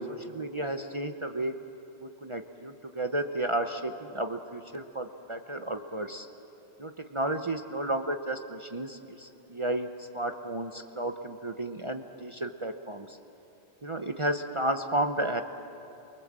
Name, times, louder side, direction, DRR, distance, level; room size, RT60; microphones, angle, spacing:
voice 1, 0.1-1.5 2.0-6.3 6.8-13.2 13.8-15.4, right 1 dB, 30° right, 5 dB, 0.9 m, -32 dB
29.0 x 23.5 x 7.5 m, 2.8 s
omnidirectional pair, 1.1 m